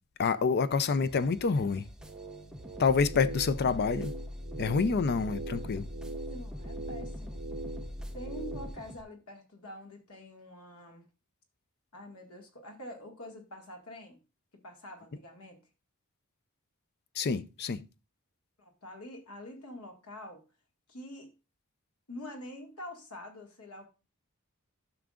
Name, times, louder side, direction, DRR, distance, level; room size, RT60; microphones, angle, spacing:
voice 1, 0.2-1.8 2.8-4.1 4.6-5.9 17.2-17.8, left 5 dB, 45° left, 0.5 m, -27 dB
sound 1, 1.0-9.0, equal, 5° right, 0.7 m, -49 dB
sound 2, 2.0-8.7, right 1 dB, 45° right, 1.5 m, -40 dB
voice 2, 6.3-7.4 8.1-11.0 11.9-14.2 14.6-15.6 18.6-20.4 20.9-21.3 22.1-23.9, left 1 dB, 75° left, 1.9 m, -46 dB
12.5 x 5.9 x 2.4 m
head